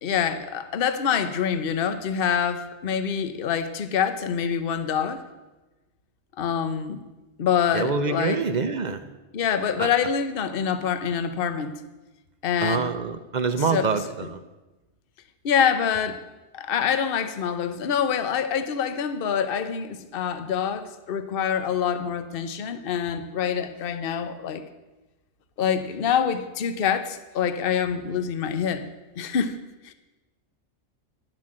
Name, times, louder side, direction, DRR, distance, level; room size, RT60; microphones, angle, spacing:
voice 1, 0.0-5.2 6.4-7.0 7.4-8.4 9.3-11.7 12.4-12.9 13.5-14.3 15.4-16.2 16.5-24.6 25.6-29.6 29.8-29.9, left 7 dB, 50° left, 10 dB, 0.9 m, -26 dB
voice 2, 7.7-9.0 9.8-9.9 12.6-14.4, right 5 dB, 45° right, 10 dB, 0.7 m, -26 dB
11.0 x 7.5 x 7.7 m, 1.1 s
omnidirectional pair, 1.3 m